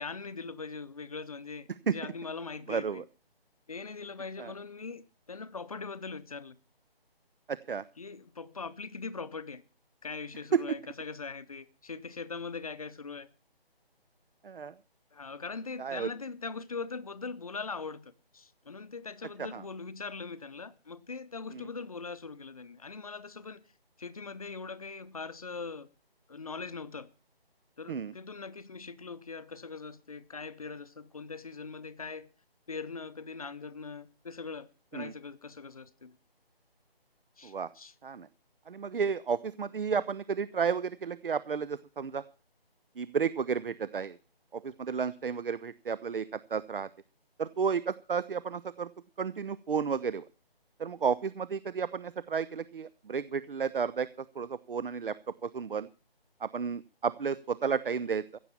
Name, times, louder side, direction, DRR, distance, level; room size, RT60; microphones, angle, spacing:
voice 1, 0.0-3.0 3.7-6.6 8.0-9.6 10.0-13.3 15.1-23.6 24.0-25.9 26.3-27.1 27.8-32.3 32.7-36.2 37.4-37.9, left 4 dB, 35° left, 0.7 m, -41 dB
voice 2, 2.7-3.0 4.4-4.5 7.5-7.8 10.5-10.6 14.4-14.7 15.8-16.1 19.4-19.6 21.5-21.7 27.9-28.1 34.9-35.1 37.4-37.7 38.0-38.3 38.7-42.2 43.0-44.2 44.5-46.9 47.4-48.9 49.2-50.3 50.8-55.2 55.4-55.9 56.4-58.4, right 6 dB, 60° right, 0.6 m, -32 dB
15.5 x 7.3 x 7.1 m
figure-of-eight pair, 170°, 30 cm